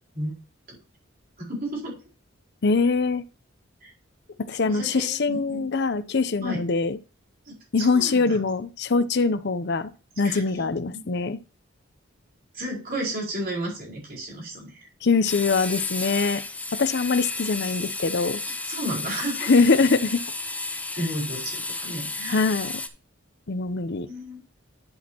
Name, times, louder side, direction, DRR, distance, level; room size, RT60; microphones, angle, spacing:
voice 1, 1.4-2.0 3.8-3.9 4.6-5.7 6.4-6.6 7.5-8.4 10.2-11.0 12.5-14.9 18.6-19.5 20.7-22.5 24.1-24.4, right 1 dB, 50° right, 5.0 m, -33 dB
voice 2, 2.6-3.2 4.4-7.0 7.7-9.9 10.2-11.4 15.0-16.4 16.7-18.4 19.4-20.2 22.3-22.8 23.5-24.1, left 4 dB, 55° left, 0.6 m, -23 dB
sound 1, 15.2-22.9, left 3 dB, 5° left, 0.7 m, -32 dB
11.0 x 6.3 x 2.9 m
head